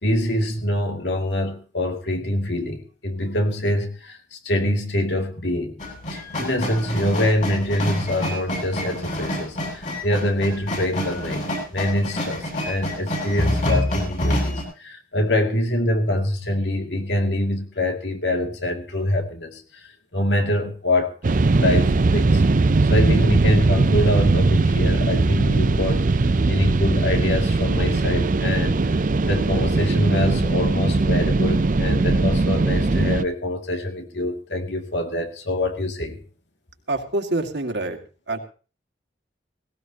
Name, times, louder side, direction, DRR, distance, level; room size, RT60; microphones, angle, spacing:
voice 1, 0.0-5.7 6.1-21.2 21.5-22.4 22.9-26.0 26.5-36.2, left 1 dB, 85° left, 4 dB, 2.5 m, -25 dB
sound 1, 5.8-14.6, left 1 dB, 45° left, 7.7 m, -27 dB
sound 2, 21.2-33.2, right 3 dB, 50° right, 0.6 m, -20 dB
voice 2, 36.9-38.0 38.3-38.4, right 2 dB, 85° right, 4 dB, 2.2 m, -26 dB
18.0 x 17.5 x 2.9 m, 0.36 s
head